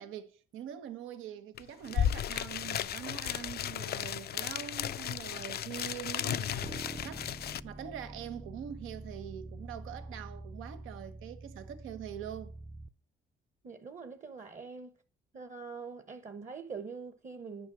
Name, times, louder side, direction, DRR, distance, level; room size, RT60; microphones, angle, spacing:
voice 1, 0.0-7.4 7.6-12.5, right 9 dB, 90° right, 1.1 m, -44 dB
sound 1, 1.6-1.7 1.8-7.6, left 10 dB, 55° left, 0.4 m, -34 dB
sound 2, 6.6-12.9, right 2 dB, 15° right, 0.6 m, -46 dB
voice 2, 13.6-14.9 15.3-17.7, right 5 dB, 40° right, 1.1 m, -44 dB
10.5 x 5.6 x 6.2 m
cardioid pair, 90°, 20 cm